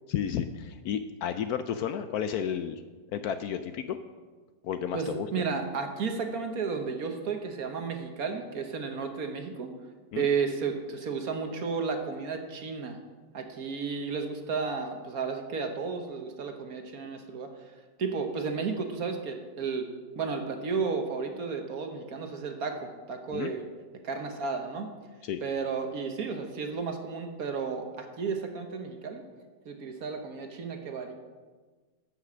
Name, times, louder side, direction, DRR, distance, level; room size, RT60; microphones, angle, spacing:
voice 1, 0.1-2.8 3.1-4.0 4.6-5.5 10.1-10.3 23.3-23.5 25.2-25.4, left 8 dB, 70° left, 10 dB, 0.9 m, -32 dB
voice 2, 4.9-9.7 10.1-13.0 13.3-17.5 18.0-19.9 20.2-23.7 24.0-24.9 25.4-29.2 29.6-31.1, right 5 dB, 60° right, 5 dB, 1.5 m, -33 dB
14.0 x 5.8 x 6.1 m, 1.4 s
omnidirectional pair, 1.9 m